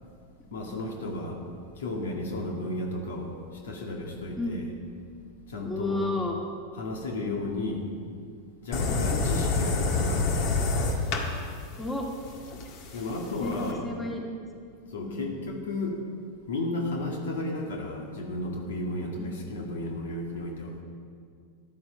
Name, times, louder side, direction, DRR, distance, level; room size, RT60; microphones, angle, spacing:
voice 1, 0.5-1.4 1.7-4.7 5.5-6.0 6.7-7.9 8.6-10.3 12.9-13.9 14.9-16.0 16.5-20.7, left 2 dB, 65° left, 1 dB, 2.1 m, -33 dB
voice 2, 5.6-6.4 8.9-9.1 11.8-12.1 13.4-13.5 13.8-14.2 15.0-15.3 19.2-19.5, left 2 dB, 15° left, 0 dB, 2.5 m, -33 dB
sound 1, 8.7-13.7, left 3 dB, 50° left, 1.8 m, -28 dB
14.0 x 11.5 x 5.8 m, 2.2 s
figure-of-eight pair, 90°, 0 cm